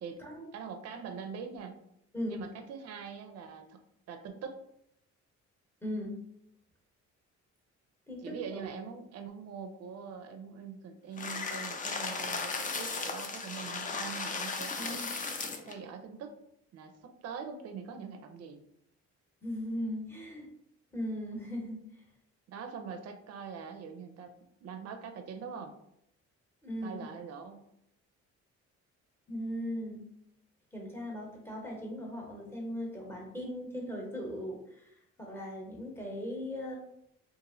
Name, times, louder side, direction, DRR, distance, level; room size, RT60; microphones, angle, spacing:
voice 1, 0.5-1.8 2.3-4.6 8.2-15.1 15.7-16.4 16.7-18.6 22.5-24.3 24.6-25.7 26.8-27.6, right 6 dB, 55° right, 6 dB, 0.5 m, -43 dB
voice 2, 2.1-2.5 5.8-6.2 8.1-8.7 14.8-15.1 19.4-20.5 20.9-21.8 26.6-27.0 29.3-30.0 30.7-36.8, equal, 10° left, -1 dB, 0.9 m, -38 dB
sound 1, 11.2-15.7, left 4 dB, 25° left, 0.4 m, -36 dB
2.9 x 2.5 x 2.5 m, 0.77 s
cardioid pair, 90°, 30 cm